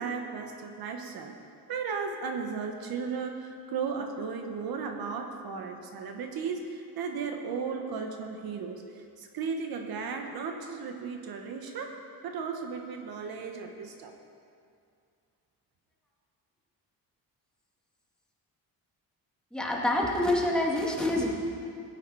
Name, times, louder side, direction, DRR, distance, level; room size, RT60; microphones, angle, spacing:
voice 1, 0.0-1.4 1.7-11.9 12.2-14.1, right 5 dB, 65° right, 4 dB, 1.6 m, -35 dB
voice 2, 19.5-21.3, left 1 dB, ahead, -3 dB, 2.3 m, -26 dB
16.5 x 9.4 x 4.9 m, 2.4 s
cardioid pair, 110°, 40 cm